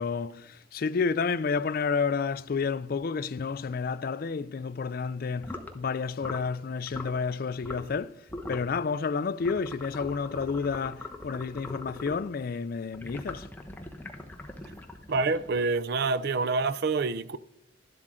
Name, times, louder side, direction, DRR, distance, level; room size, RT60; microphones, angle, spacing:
voice 1, 0.0-8.1 8.5-13.5, left 5 dB, 45° left, 0.4 m, -30 dB
sound 1, 5.4-5.7 6.2-6.5 6.9-7.2 7.6-8.0 8.3-8.7 9.4-12.3 12.9-15.8, left 2 dB, 10° left, 0.9 m, -41 dB
voice 2, 15.1-17.4, right 3 dB, 55° right, 0.4 m, -27 dB
12.0 x 11.5 x 3.7 m
head